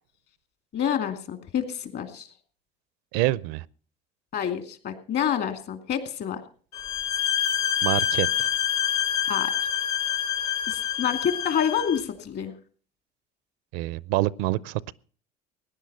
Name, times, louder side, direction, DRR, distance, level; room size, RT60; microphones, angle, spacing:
voice 1, 0.7-2.3 4.3-6.4 9.2-9.5 10.7-12.5, left 8 dB, 55° left, 2.5 m, -28 dB
voice 2, 3.1-3.7 7.8-8.5 13.7-14.9, right 17 dB, 75° right, 0.5 m, -26 dB
sound 1, 6.7-12.0, left 10 dB, 70° left, 2.9 m, -26 dB
17.5 x 10.0 x 5.6 m
hypercardioid pair, 75°, 20 cm